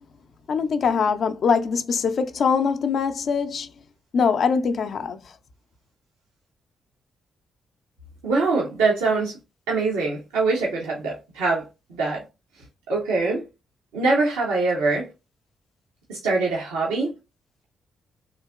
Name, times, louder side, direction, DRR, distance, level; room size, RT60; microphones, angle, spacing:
voice 1, 0.5-3.7 4.1-5.2, left 5 dB, 60° left, 0.5 m, -22 dB
voice 2, 8.2-9.3 9.7-11.6 12.0-12.2 12.9-13.4 13.9-15.1 16.1-17.1, right 3 dB, 85° right, 0.9 m, -23 dB
3.7 x 2.7 x 2.3 m
hypercardioid pair, 40°, 0 cm